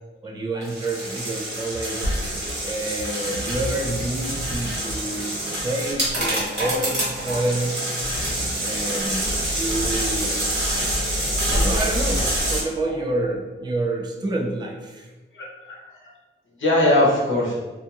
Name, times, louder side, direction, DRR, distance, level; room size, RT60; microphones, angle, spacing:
voice 1, 0.2-2.2 2.6-7.9 8.6-10.4 11.5-15.1, right 2 dB, 20° right, 0 dB, 0.3 m, -28 dB
sound 1, 0.6-12.6, right 1 dB, 60° right, 1.2 m, -26 dB
voice 2, 10.7-11.4 12.8-12.9 15.3-15.8 16.6-17.5, left 1 dB, 75° left, -4 dB, 0.8 m, -22 dB
2.7 x 2.5 x 2.3 m, 1.2 s
wide cardioid pair, 105°, 20 cm